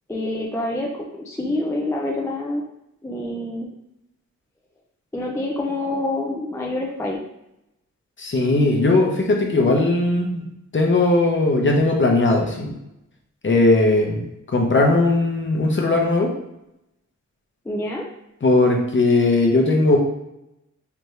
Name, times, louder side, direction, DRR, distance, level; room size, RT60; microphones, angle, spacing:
voice 1, 0.1-0.9 1.2-2.7 3.0-3.7 5.1-7.2 17.7-18.1, left 1 dB, 10° left, -1 dB, 0.4 m, -26 dB
voice 2, 8.2-10.4 10.7-12.7 13.4-14.3 14.5-16.3 18.4-20.0, left 2 dB, 40° left, 0 dB, 0.7 m, -18 dB
3.4 x 2.7 x 3.1 m, 0.86 s
wide cardioid pair, 115°, 29 cm